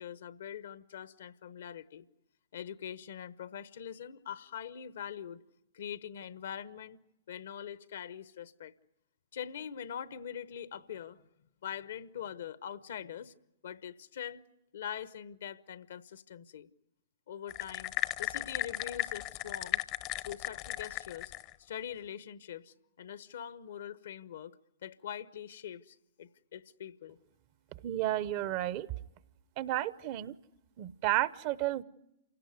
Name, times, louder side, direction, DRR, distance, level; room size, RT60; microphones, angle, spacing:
voice 1, 0.0-2.1 2.5-5.4 5.7-7.0 7.3-8.7 9.3-11.2 11.6-13.3 13.6-14.4 14.7-16.7 17.3-17.9 18.2-19.8 20.2-21.3 21.6-24.6 24.8-27.2, left 9 dB, 65° left, 1.1 m, -43 dB
sound 1, 17.5-21.5, left 16 dB, 40° left, 0.8 m, -35 dB
voice 2, 27.8-28.9 29.6-30.3 30.8-31.8, right 14 dB, 45° right, 0.8 m, -32 dB
28.0 x 17.5 x 9.5 m
figure-of-eight pair, 110°, 0 cm